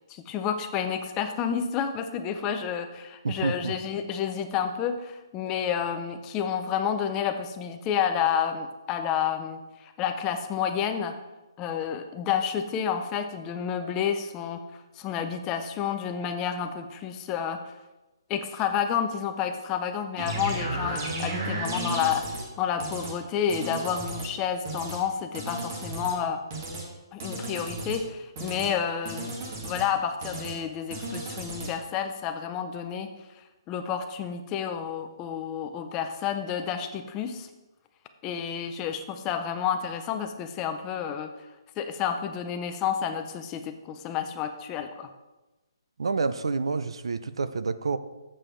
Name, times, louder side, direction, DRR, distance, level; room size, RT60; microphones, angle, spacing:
voice 1, 0.1-11.1 11.6-14.6 15.0-17.6 18.3-26.4 27.1-29.3 29.6-33.1 33.7-37.5 38.2-41.3 41.8-45.1, left 8 dB, 15° left, 7 dB, 0.4 m, -30 dB
voice 2, 3.2-3.8 46.0-48.0, right 4 dB, 85° right, 12 dB, 0.6 m, -28 dB
sound 1, 20.2-22.5 22.8-23.1 23.5-24.3 24.6-25.0 25.3-26.2 26.5-26.9 27.2-28.0 28.4-28.7 29.0-29.9 30.2-30.6 30.9-31.7, right 2 dB, 35° right, 1.7 m, -34 dB
7.6 x 5.0 x 5.7 m, 1.1 s
hypercardioid pair, 170°, 3 cm